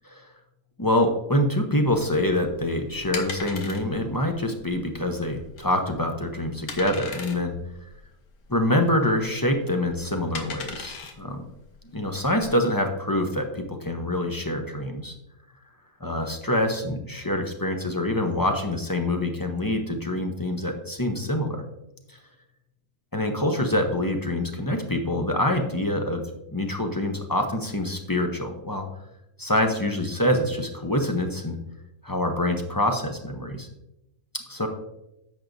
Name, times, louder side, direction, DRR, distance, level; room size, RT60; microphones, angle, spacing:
voice 1, 0.8-7.6 8.5-11.4 11.9-15.1 16.0-21.6 23.1-26.2 26.5-28.9 29.4-31.6 32.0-33.7 34.5-34.7, left 1 dB, 20° left, 4 dB, 0.5 m, -25 dB
sound 1, 1.9-12.5, left 5 dB, 90° left, 1.5 m, -40 dB
10.5 x 7.2 x 2.6 m, 0.88 s
omnidirectional pair, 1.5 m